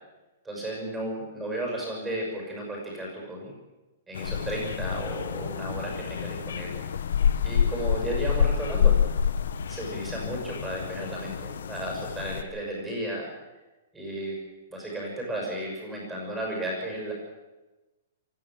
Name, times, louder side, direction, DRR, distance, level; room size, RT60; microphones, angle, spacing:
voice 1, 0.4-3.5 4.1-6.8 7.4-9.0 9.7-13.3 13.9-14.4 14.7-17.1, right 1 dB, 10° right, -1 dB, 6.1 m, -34 dB
sound 1, 4.1-12.4, left 8 dB, 80° left, 1.5 m, -27 dB
24.0 x 14.5 x 7.5 m, 1.1 s
hypercardioid pair, 175°, 0 cm